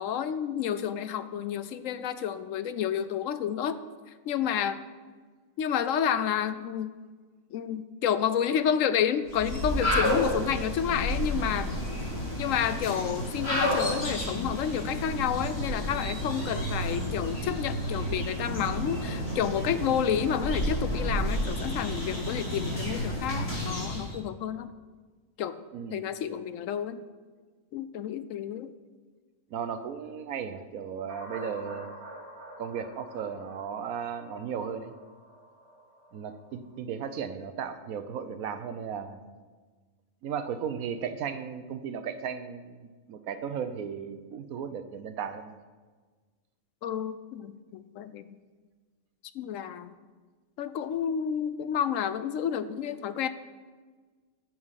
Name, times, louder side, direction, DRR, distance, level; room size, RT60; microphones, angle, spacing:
voice 1, 0.0-3.8 4.3-4.8 5.6-6.9 7.5-11.7 12.4-24.7 25.4-25.6 25.9-27.0 27.7-28.7 46.8-48.2 49.3-49.9 50.6-53.3, left 9 dB, 70° left, 13 dB, 1.0 m, -30 dB
sound 1, 9.3-24.2, equal, 50° left, 3.1 m, -31 dB
voice 2, 25.7-26.1 29.5-32.0 32.6-34.9 36.1-39.2 40.2-45.6, right 7 dB, 90° right, 10 dB, 1.2 m, -35 dB
sound 2, 31.1-36.7, right 1 dB, 50° right, 2.6 m, -47 dB
14.5 x 6.1 x 5.7 m, 1.4 s
omnidirectional pair, 1.4 m